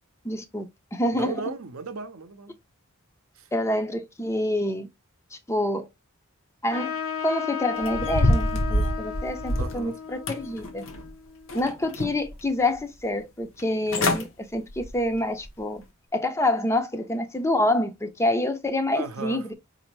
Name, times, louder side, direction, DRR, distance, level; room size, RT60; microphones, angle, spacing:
voice 1, 0.2-1.4 3.5-4.9 5.5-5.9 6.6-6.9 7.2-10.9 11.5-15.8 16.1-19.6, left 1 dB, 15° left, 0.5 m, -27 dB
voice 2, 1.2-2.6 3.4-3.5 9.6-10.0 18.9-19.5, right 4 dB, 70° right, 0.6 m, -36 dB
Trumpet, 6.7-11.7, left 7 dB, 85° left, 0.9 m, -34 dB
sound 1, 7.8-9.8 10.3-11.1 11.5-12.3 12.8-12.9 13.6-13.7 13.9-14.2 14.7-15.0 15.4-15.5, left 1 dB, 65° left, 0.7 m, -26 dB
4.2 x 2.6 x 2.9 m
head